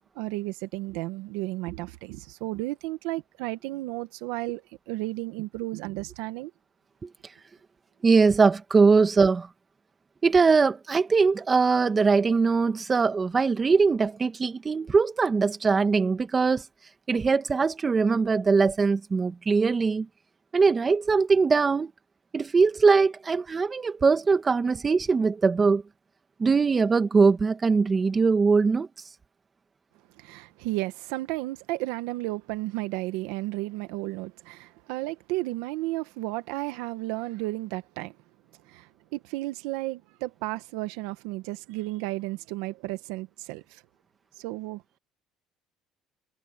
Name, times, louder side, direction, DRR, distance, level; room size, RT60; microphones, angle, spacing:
voice 1, 0.2-6.5 30.2-38.2 38.7-43.8 44.4-44.8, right 19 dB, 90° right, 1.7 m, -33 dB
voice 2, 8.0-9.5 10.2-16.6 17.1-20.1 20.5-21.9 22.3-25.8 26.4-28.9, right 4 dB, 25° right, 1.7 m, -21 dB
cardioid pair, 115°, 0 cm